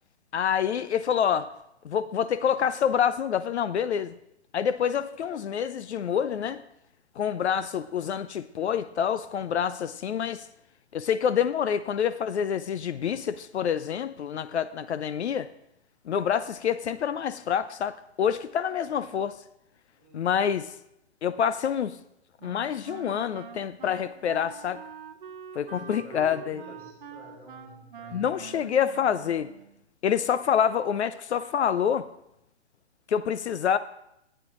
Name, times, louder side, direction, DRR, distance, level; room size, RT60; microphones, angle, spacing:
voice 1, 0.3-1.5 1.8-4.1 4.5-6.6 7.2-10.5 10.9-15.5 16.1-19.4 20.1-20.7 21.2-22.0 22.4-24.8 25.6-26.6 28.1-29.5 30.0-32.1 33.1-33.8, left 8 dB, 75° left, 14 dB, 0.6 m, -27 dB
voice 2, 19.9-20.4 25.7-28.7, right 1 dB, 5° left, -3 dB, 1.3 m, -50 dB
Wind instrument woodwind instrument, 22.4-29.8, right 7 dB, 50° right, 0.7 m, -45 dB
13.5 x 8.9 x 3.1 m, 0.80 s
hypercardioid pair, 180°, 34 cm